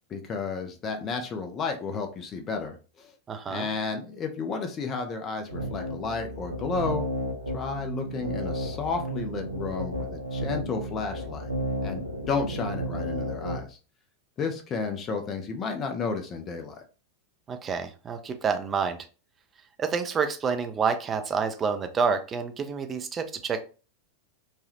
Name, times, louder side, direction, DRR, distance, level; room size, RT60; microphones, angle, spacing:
voice 1, 0.1-3.1 3.5-7.1 7.5-11.5 11.8-13.8 14.4-16.8, left 4 dB, 30° left, 5 dB, 0.5 m, -32 dB
voice 2, 3.3-3.7 17.5-19.0 19.8-23.6, right 5 dB, 20° right, 7 dB, 0.5 m, -28 dB
sound 1, 5.5-13.6, equal, 80° right, 0.6 m, -33 dB
3.2 x 2.2 x 2.8 m, 0.35 s
figure-of-eight pair, 90°, 0 cm